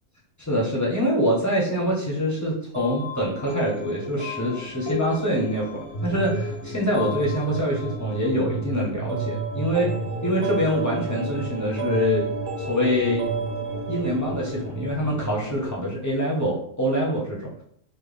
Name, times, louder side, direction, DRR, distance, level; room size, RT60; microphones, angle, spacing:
voice 1, 0.4-9.9 10.2-12.3 12.6-13.2 13.9-17.5, equal, 15° left, -5 dB, 0.7 m, -25 dB
sound 1, 2.7-15.3, right 1 dB, 40° right, 0.4 m, -34 dB
sound 2, 5.9-15.7, right 3 dB, 75° left, 1.0 m, -34 dB
3.9 x 2.1 x 3.3 m, 0.65 s
omnidirectional pair, 1.4 m